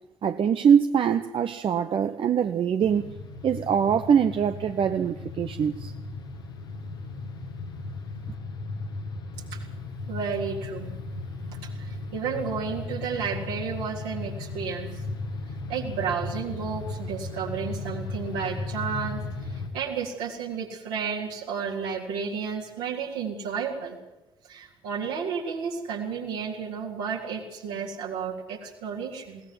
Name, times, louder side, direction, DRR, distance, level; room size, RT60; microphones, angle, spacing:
voice 1, 0.2-3.1 3.4-5.9, right 7 dB, 45° right, 9 dB, 0.9 m, -23 dB
sound 1, 2.8-19.7, left 3 dB, 80° left, 2.6 m, -36 dB
voice 2, 10.1-10.9 11.6-15.0 15.7-24.0 24.5-29.4, right 6 dB, 70° right, 0 dB, 3.6 m, -32 dB
21.5 x 18.0 x 7.7 m, 0.99 s
figure-of-eight pair, 45°, 12 cm